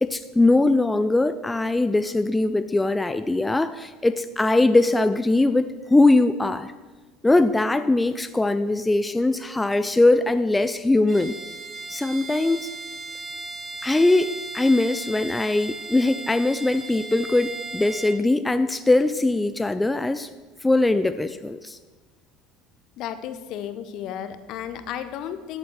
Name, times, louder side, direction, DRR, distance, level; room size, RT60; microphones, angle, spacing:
voice 1, 0.0-6.7 7.2-11.3 11.9-12.7 13.8-20.3 20.6-21.8, left 2 dB, 10° left, 11 dB, 0.4 m, -21 dB
Bowed string instrument, 11.1-18.2, right 2 dB, 30° right, 1.0 m, -36 dB
voice 2, 23.0-25.6, left 10 dB, 55° left, 11 dB, 0.9 m, -33 dB
13.5 x 7.6 x 4.7 m, 1.3 s
hypercardioid pair, 70°, 0 cm